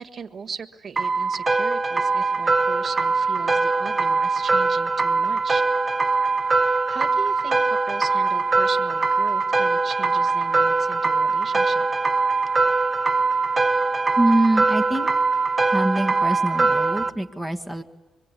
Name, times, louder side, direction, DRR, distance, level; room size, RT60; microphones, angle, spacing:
voice 1, 0.0-5.6 6.6-11.9, right 6 dB, 45° right, 5 dB, 1.6 m, -38 dB
sound 1, 1.0-17.1, right 3 dB, 25° right, 0.9 m, -22 dB
voice 2, 14.2-15.1 15.7-17.8, right 1 dB, 5° left, 7 dB, 1.8 m, -24 dB
24.5 x 23.0 x 8.4 m, 1.1 s
cardioid pair, 90°, 0 cm